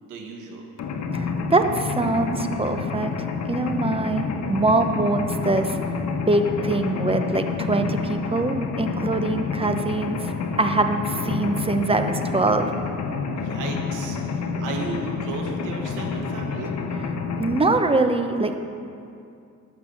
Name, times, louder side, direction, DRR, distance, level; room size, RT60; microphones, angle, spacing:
voice 1, 0.0-0.6 13.3-16.7, right 3 dB, 85° right, 2 dB, 1.7 m, -35 dB
Mechanisms, 0.8-17.6, left 4 dB, 65° left, 1.2 m, -28 dB
voice 2, 1.1-10.3 10.6-12.7 17.4-18.6, right 2 dB, 20° right, 7 dB, 0.9 m, -23 dB
12.0 x 6.4 x 7.1 m, 2.5 s
cardioid pair, 90°, 30 cm